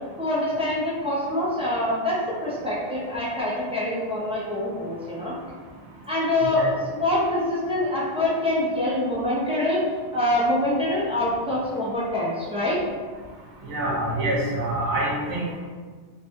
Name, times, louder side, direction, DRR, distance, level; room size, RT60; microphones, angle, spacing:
voice 1, 0.2-5.3 6.1-6.7 7.0-9.8 10.1-12.8, left 1 dB, 10° right, -8 dB, 0.3 m, -25 dB
voice 2, 13.7-15.6, right 1 dB, 80° right, -4 dB, 1.0 m, -26 dB
3.0 x 2.2 x 2.7 m, 1.5 s
omnidirectional pair, 1.2 m